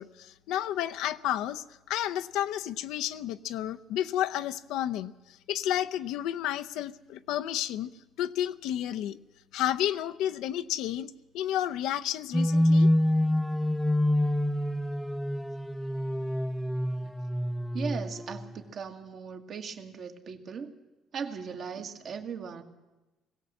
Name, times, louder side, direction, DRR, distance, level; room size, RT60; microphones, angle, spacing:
voice 1, 0.0-7.9 8.2-9.2 9.5-12.9, left 11 dB, 80° left, 10 dB, 0.7 m, -31 dB
sound 1, 12.3-18.6, left 1 dB, ahead, 0.6 m, -26 dB
voice 2, 17.7-20.7 21.1-22.6, right 6 dB, 55° right, 5 dB, 2.0 m, -38 dB
20.0 x 17.0 x 7.8 m, 1.1 s
supercardioid pair, 80°, 0 cm